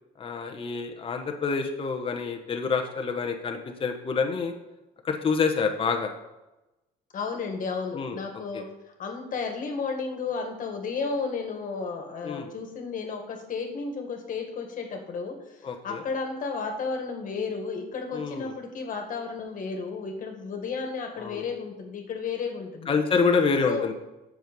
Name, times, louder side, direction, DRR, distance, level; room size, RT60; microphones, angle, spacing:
voice 1, 0.2-4.5 5.0-6.1 7.9-8.2 8.5-8.6 12.2-12.5 15.6-16.0 18.1-18.5 21.2-21.4 22.9-23.9, left 5 dB, 30° left, 4 dB, 1.1 m, -27 dB
voice 2, 7.1-8.7 9.0-23.0 23.7-23.9, left 4 dB, 50° left, 4 dB, 1.9 m, -33 dB
7.8 x 6.4 x 5.3 m, 0.99 s
cardioid pair, 110°, 17 cm